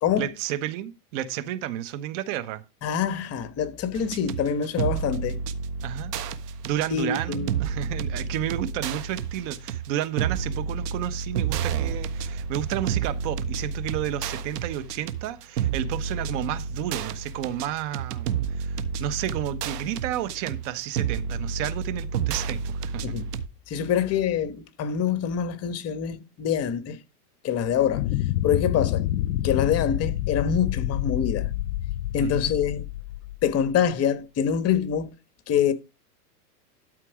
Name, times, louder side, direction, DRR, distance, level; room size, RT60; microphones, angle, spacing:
voice 1, 0.2-2.6 5.8-6.2 6.6-23.1 32.2-32.5, right 12 dB, 50° right, 1.1 m, -31 dB
voice 2, 2.8-5.4 6.9-7.5 23.0-23.3 23.7-27.0 27.4-28.1 28.4-29.0 29.4-31.5 32.1-32.9 33.4-35.1 35.5-35.7, left 8 dB, 30° left, 1.4 m, -25 dB
sound 1, 3.9-23.5, right 6 dB, 75° right, 1.4 m, -30 dB
sound 2, 27.9-33.7, left 14 dB, 90° left, 0.5 m, -28 dB
12.5 x 4.5 x 4.9 m
hypercardioid pair, 125°, 48 cm